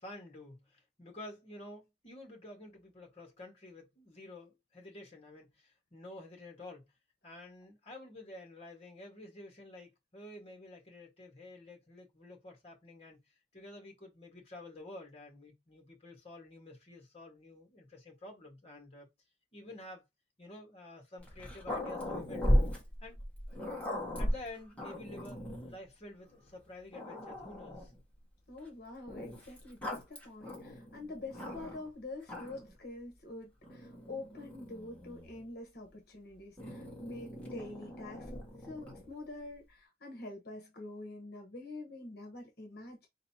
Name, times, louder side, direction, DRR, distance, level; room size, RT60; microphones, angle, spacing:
voice 1, 0.0-6.9 7.2-19.1 19.5-20.0 20.4-22.5 23.0-23.2 24.2-27.9, left 2 dB, 35° left, 1.7 m, -50 dB
Growling, 21.2-25.8 26.5-26.6 26.9-28.0 29.1-31.9 32.2-32.8 33.6-35.5 36.6-39.1, equal, 10° left, 1.6 m, -37 dB
voice 2, 28.5-38.3 38.6-43.1, left 2 dB, 60° left, 1.2 m, -46 dB
4.5 x 3.9 x 2.9 m
head